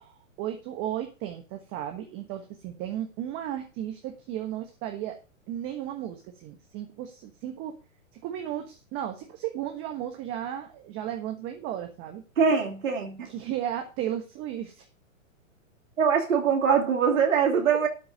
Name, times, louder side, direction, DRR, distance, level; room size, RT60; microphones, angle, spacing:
voice 1, 0.0-5.2 5.5-7.8 8.1-12.2 13.2-14.9 17.5-17.9, right 11 dB, 30° right, 1.3 m, -34 dB
voice 2, 12.4-13.2 16.0-17.9, right 6 dB, 75° right, 2.9 m, -23 dB
12.0 x 4.4 x 6.6 m
hypercardioid pair, 130°, 40 cm